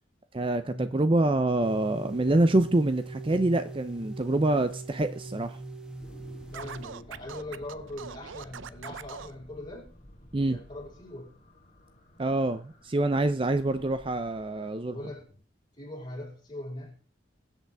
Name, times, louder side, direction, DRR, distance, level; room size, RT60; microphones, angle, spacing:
voice 1, 0.3-5.6 10.3-10.6 12.2-15.0, right 2 dB, 25° right, 0.5 m, -26 dB
sound 1, 1.6-6.8, right 2 dB, 5° right, 1.2 m, -41 dB
sound 2, 6.0-15.4, left 1 dB, 40° left, 2.7 m, -53 dB
voice 2, 6.5-9.9 10.5-11.3 14.9-15.2 15.8-17.0, left 1 dB, 25° left, 5.0 m, -41 dB
Scratching (performance technique), 6.5-9.3, right 7 dB, 80° right, 0.5 m, -42 dB
21.5 x 8.1 x 3.5 m
head